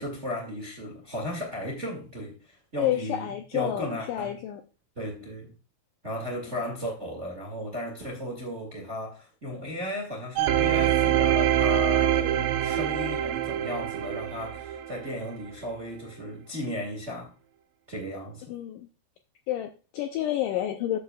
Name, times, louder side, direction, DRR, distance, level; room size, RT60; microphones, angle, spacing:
voice 1, 0.0-4.3 4.9-5.5 6.0-17.3 17.9-18.4, left 1 dB, 35° right, 1.1 m, -35 dB
voice 2, 2.8-4.6 18.5-18.9 19.5-21.0, left 12 dB, 80° left, 1.9 m, -29 dB
sound 1, 10.4-15.2 15.7-15.8, right 11 dB, 80° right, 2.1 m, -25 dB
13.0 x 6.6 x 2.3 m
omnidirectional pair, 4.5 m